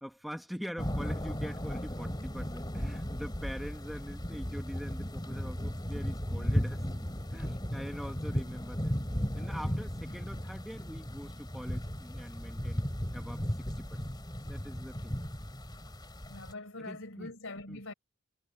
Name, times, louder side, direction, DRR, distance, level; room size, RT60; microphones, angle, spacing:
voice 1, 0.0-6.8 7.3-8.9 9.3-12.8 13.1-14.0 14.4-15.2 16.8-17.3 17.7-17.8, equal, ahead, 1.3 m, -44 dB
sound 1, 0.8-16.5, equal, 20° left, 2.7 m, -35 dB
voice 2, 16.3-17.9, left 2 dB, 65° left, 4.3 m, -43 dB
head